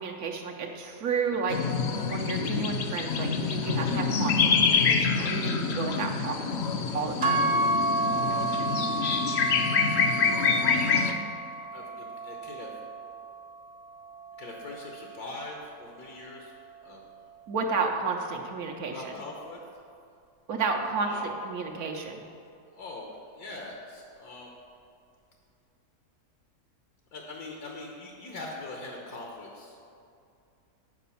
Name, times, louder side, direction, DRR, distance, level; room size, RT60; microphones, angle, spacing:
voice 1, 0.0-1.6 2.1-6.6 6.9-7.4 17.5-19.0 20.5-21.1 21.4-22.2, right 5 dB, 70° right, 1 dB, 1.2 m, -32 dB
sound 1, 1.5-11.1, left 5 dB, 60° left, 0.8 m, -26 dB
sound 2, 7.2-15.5, right 2 dB, 55° right, 0.9 m, -31 dB
voice 2, 11.7-12.7 14.4-16.5 16.8-17.1 18.9-19.6 21.0-21.2 22.7-24.5 27.1-29.8, left 2 dB, 75° left, -1 dB, 1.6 m, -42 dB
9.4 x 5.0 x 6.9 m, 2.5 s
omnidirectional pair, 1.7 m